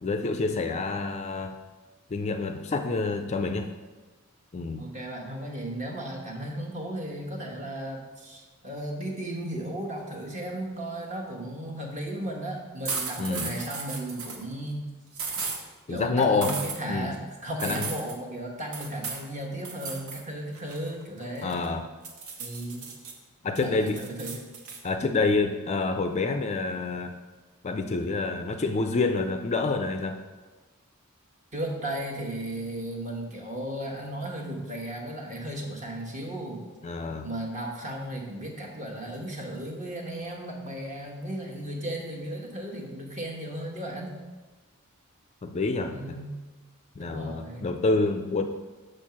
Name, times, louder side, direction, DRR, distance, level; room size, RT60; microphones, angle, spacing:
voice 1, 0.0-1.6 2.1-3.7 4.5-4.9 13.2-13.5 15.9-16.5 16.9-17.1 17.6-17.9 21.4-21.9 23.4-24.0 24.8-27.2 27.6-30.2 36.8-37.3 45.4-46.2 47.0-48.4, left 3 dB, 30° left, 7 dB, 0.4 m, -27 dB
voice 2, 4.8-14.9 15.9-21.6 22.4-22.9 23.6-24.5 31.5-36.6 37.2-44.2 45.8-46.4 47.0-47.7, right 1 dB, 35° right, 0 dB, 1.2 m, -35 dB
sound 1, 12.8-14.4 15.1-15.6 16.4-16.8 17.6-18.2 18.7-19.2 19.6-20.2 20.5-21.7 22.0-23.1 23.5-24.8, right 5 dB, 75° right, 1.0 m, -35 dB
6.5 x 4.5 x 5.9 m, 1.2 s
head